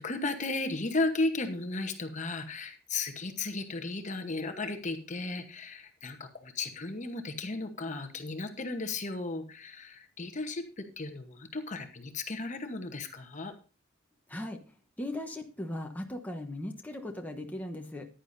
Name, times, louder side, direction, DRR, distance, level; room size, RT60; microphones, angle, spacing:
voice 1, 0.0-13.5, left 3 dB, 35° left, 7 dB, 1.1 m, -35 dB
voice 2, 14.3-14.6 15.0-18.1, left 1 dB, 10° left, 2 dB, 1.1 m, -38 dB
14.5 x 10.5 x 2.6 m, 0.35 s
head